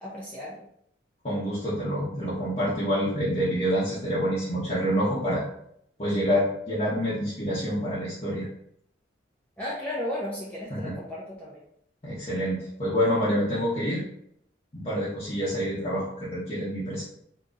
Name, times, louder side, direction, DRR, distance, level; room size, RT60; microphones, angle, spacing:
voice 1, 0.0-0.6 9.6-11.6, left 1 dB, 5° left, -7 dB, 0.6 m, -34 dB
voice 2, 1.2-5.4 6.0-8.5 10.7-11.0 12.0-14.0 14.7-17.0, equal, 35° left, -10 dB, 0.9 m, -27 dB
3.9 x 2.8 x 2.4 m, 0.70 s
head